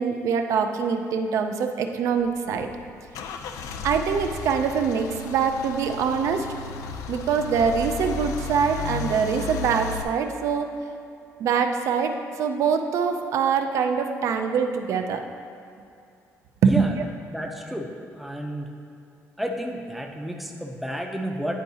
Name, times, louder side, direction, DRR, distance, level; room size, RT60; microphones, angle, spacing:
voice 1, 0.0-2.7 3.8-6.5 7.1-10.7 11.4-15.2 16.6-17.0, right 6 dB, 65° right, 6 dB, 0.4 m, -24 dB
Car / Engine starting / Idling, 2.2-10.0, left 5 dB, 75° left, 0.4 m, -34 dB
voice 2, 17.3-17.9 18.2-18.7 19.4-21.6, equal, ahead, 2 dB, 0.4 m, -31 dB
9.3 x 4.6 x 2.8 m, 2.5 s
cardioid pair, 165°, 6 cm